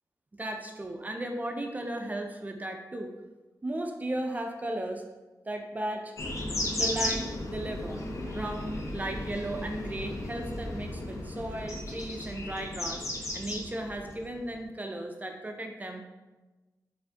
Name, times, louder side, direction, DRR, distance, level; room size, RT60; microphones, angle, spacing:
voice 1, 0.4-3.1 3.6-5.0 5.5-6.1 6.8-16.0, right 1 dB, 20° right, 3 dB, 0.3 m, -36 dB
sound 1, 6.2-14.6, left 1 dB, 45° left, 0.5 m, -35 dB
4.3 x 2.5 x 2.7 m, 1.2 s
wide cardioid pair, 155°, 7 cm